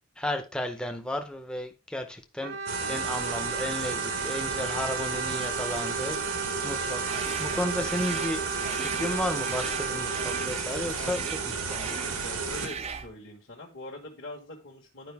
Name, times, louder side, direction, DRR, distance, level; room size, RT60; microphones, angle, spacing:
voice 1, 0.2-2.6 2.9-6.2 6.6-7.0 7.4-12.0, left 1 dB, 5° left, 0.7 m, -33 dB
Brass instrument, 2.4-10.6, right 4 dB, 55° right, 0.8 m, -34 dB
sound 1, 2.7-12.7, right 5 dB, 90° right, 1.4 m, -33 dB
sound 2, 7.0-13.1, right 5 dB, 30° right, 0.5 m, -39 dB
voice 2, 10.9-11.6 12.2-15.1, left 2 dB, 50° left, 1.6 m, -43 dB
10.5 x 5.0 x 3.5 m
head